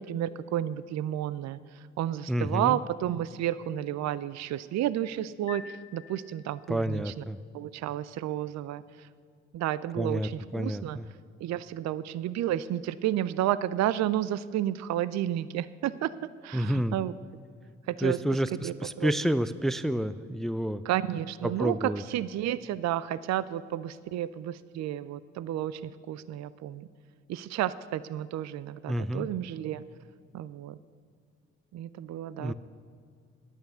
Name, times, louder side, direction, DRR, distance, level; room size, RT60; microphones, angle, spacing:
voice 1, 0.0-1.6 2.0-7.1 7.5-9.1 9.5-11.0 11.4-16.1 16.4-17.1 17.9-18.2 18.6-19.4 20.8-26.9 27.3-29.8 30.3-30.8 31.7-32.5, right 12 dB, 55° right, 17 dB, 0.5 m, -31 dB
voice 2, 2.3-2.8 6.7-7.4 10.0-11.1 16.5-17.0 18.0-20.8 21.4-22.0 28.9-29.3 32.4-32.5, equal, ahead, 15 dB, 0.5 m, -29 dB
sound 1, 5.5-6.9, left 8 dB, 55° left, 1.8 m, -47 dB
10.5 x 8.9 x 6.8 m, 2.2 s
hypercardioid pair, 45°, 32 cm